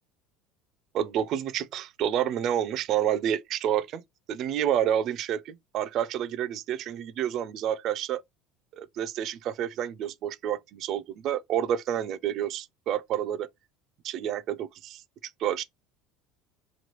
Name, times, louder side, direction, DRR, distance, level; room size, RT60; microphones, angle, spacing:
voice 1, 0.9-4.0 4.3-8.2 8.8-13.5 14.0-15.6, right 10 dB, 45° right, 0.4 m, -29 dB
3.0 x 2.2 x 3.0 m
cardioid pair, 140°, 0 cm